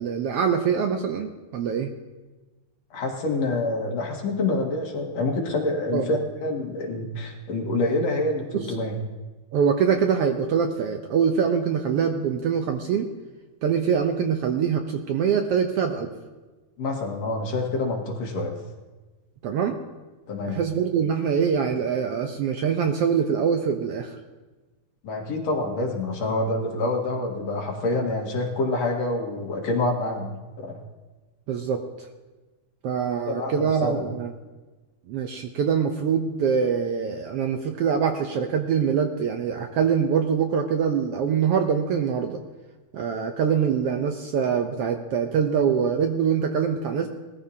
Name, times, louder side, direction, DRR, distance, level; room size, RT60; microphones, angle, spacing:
voice 1, 0.0-1.9 5.9-6.1 8.5-8.7 9.5-13.1 13.6-16.1 19.4-19.8 20.5-24.2 31.5-32.1 32.8-34.3 35.1-42.4 42.9-47.1, right 7 dB, 70° right, 5 dB, 1.5 m, -24 dB
voice 2, 2.9-9.0 16.8-18.6 20.3-20.6 25.0-30.8 33.3-34.1, left 2 dB, 65° left, 0 dB, 2.8 m, -27 dB
20.0 x 14.0 x 2.8 m, 1.2 s
omnidirectional pair, 3.3 m